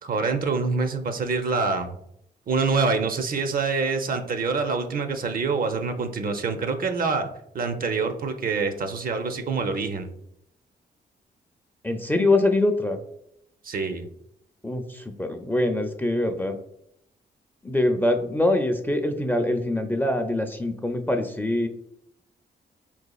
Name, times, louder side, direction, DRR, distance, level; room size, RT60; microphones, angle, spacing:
voice 1, 0.0-1.9 2.5-7.3 7.5-10.1 13.6-14.1, right 4 dB, 50° right, 7 dB, 0.5 m, -26 dB
voice 2, 11.8-13.0 14.6-16.6 17.6-21.7, left 1 dB, 10° left, 5 dB, 0.4 m, -24 dB
4.0 x 2.4 x 2.3 m, 0.75 s
supercardioid pair, 55°, 18 cm